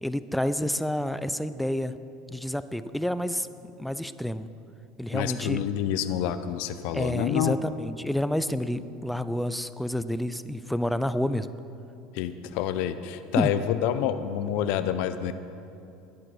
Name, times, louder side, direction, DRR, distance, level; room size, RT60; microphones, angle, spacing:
voice 1, 0.0-2.0 2.3-3.5 3.8-4.5 5.0-5.6 6.9-11.5 13.4-13.5, left 1 dB, ahead, 13 dB, 0.4 m, -29 dB
voice 2, 5.1-7.5 12.1-15.3, left 10 dB, 65° left, 10 dB, 0.6 m, -28 dB
11.0 x 10.5 x 6.1 m, 2.7 s
supercardioid pair, 130°, 2 cm